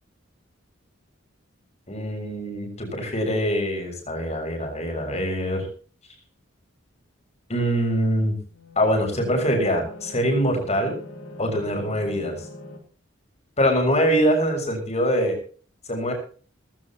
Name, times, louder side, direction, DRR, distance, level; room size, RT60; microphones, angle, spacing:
voice 1, 1.9-5.7 7.5-8.4 8.8-10.9 11.4-12.4 13.6-15.4 15.9-16.1, equal, 35° left, 3 dB, 6.6 m, -23 dB
sound 1, 8.4-12.8, left 1 dB, 85° left, 3.5 m, -42 dB
19.0 x 16.5 x 3.0 m, 0.41 s
head